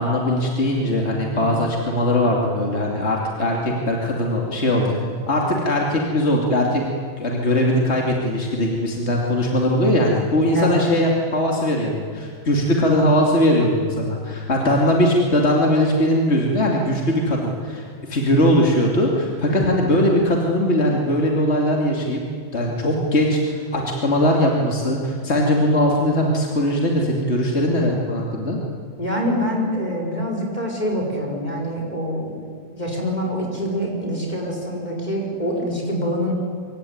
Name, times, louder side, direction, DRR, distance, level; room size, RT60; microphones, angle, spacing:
voice 1, 0.0-6.8 7.2-22.2 22.5-28.6, left 1 dB, 55° left, -1 dB, 3.1 m, -20 dB
voice 2, 1.3-1.6 10.5-10.8 19.5-19.8 29.0-36.3, equal, 30° left, 0 dB, 4.9 m, -25 dB
25.5 x 24.0 x 9.6 m, 2.1 s
omnidirectional pair, 1.4 m